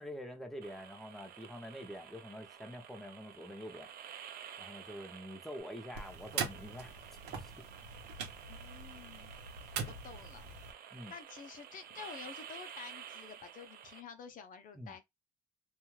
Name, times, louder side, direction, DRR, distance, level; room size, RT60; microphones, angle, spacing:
voice 1, 0.0-3.9 4.6-7.7 8.0-8.2 10.9-11.1 14.7-15.0, equal, ahead, 0.7 m, -46 dB
sound 1, 0.6-14.0, right 9 dB, 60° right, 0.6 m, -51 dB
sound 2, 5.9-10.7, right 6 dB, 85° right, 0.9 m, -42 dB
voice 2, 8.5-9.3 9.8-10.4 11.1-15.0, left 7 dB, 55° left, 0.6 m, -50 dB
2.4 x 2.3 x 3.1 m
cardioid pair, 110°, 17 cm